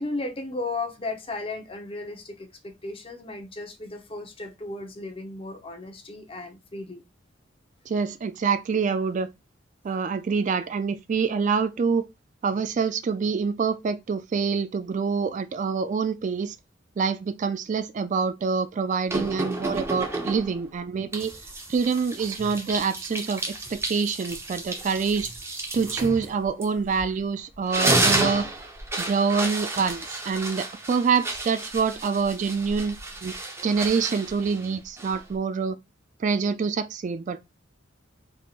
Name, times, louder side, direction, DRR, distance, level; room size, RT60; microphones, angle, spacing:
voice 1, 0.0-7.1, left 2 dB, 30° left, 0.9 m, -35 dB
voice 2, 7.9-9.3 9.8-12.0 12.4-16.6 17.0-21.3 21.7-23.4 23.7-25.3 25.7-28.5 29.0-33.3 33.6-35.8 36.2-37.4, right 5 dB, 40° right, 0.3 m, -26 dB
sound 1, 19.1-20.6 21.1-27.2 27.5-35.4, right 2 dB, 15° right, 0.8 m, -31 dB
4.4 x 3.5 x 2.4 m
head